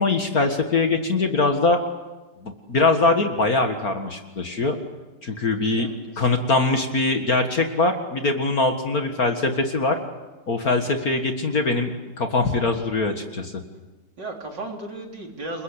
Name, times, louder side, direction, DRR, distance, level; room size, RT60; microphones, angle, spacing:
voice 1, 0.0-1.8 2.4-4.8 5.2-5.9 6.2-10.0 10.5-11.9 12.2-13.5, left 3 dB, 45° left, 5 dB, 2.1 m, -22 dB
voice 2, 5.7-6.3 14.2-15.6, right 2 dB, 55° right, 1 dB, 4.5 m, -35 dB
29.0 x 22.0 x 8.3 m, 1.2 s
omnidirectional pair, 2.4 m